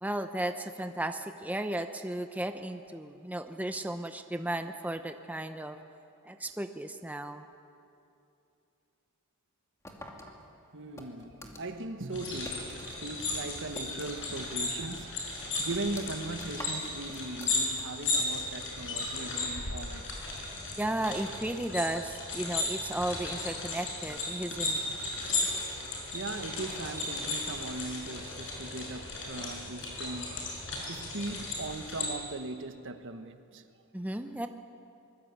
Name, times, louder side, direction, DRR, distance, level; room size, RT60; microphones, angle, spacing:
voice 1, 0.0-5.8 6.2-7.4 20.8-24.8 33.9-34.5, right 1 dB, 5° right, 0.8 m, -34 dB
sound 1, 9.8-12.9 13.2-14.5 14.8-14.9 15.3-18.1, left 1 dB, 15° left, 2.6 m, -47 dB
voice 2, 10.7-20.1 24.5-24.6 24.9-25.0 25.6-33.6, right 2 dB, 60° right, 1.4 m, -39 dB
sound 2, 12.1-32.1, left 3 dB, 60° left, 6.8 m, -35 dB
24.0 x 21.5 x 8.4 m
head